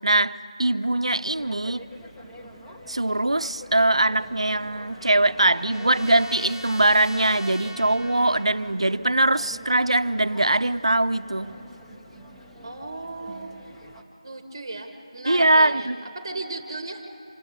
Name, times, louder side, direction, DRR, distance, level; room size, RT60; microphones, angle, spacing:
voice 1, 0.0-1.9 2.9-11.5 15.3-16.0, right 2 dB, 65° right, 15 dB, 0.6 m, -22 dB
sound 1, 1.3-14.0, equal, 5° left, 0.7 m, -45 dB
Trumpet, 4.1-8.8, left 1 dB, 35° left, 0.8 m, -43 dB
voice 2, 12.6-13.6 14.2-17.1, right 2 dB, 25° right, 6 dB, 1.3 m, -36 dB
27.0 x 26.5 x 4.1 m, 2.9 s
figure-of-eight pair, 165°, 3 cm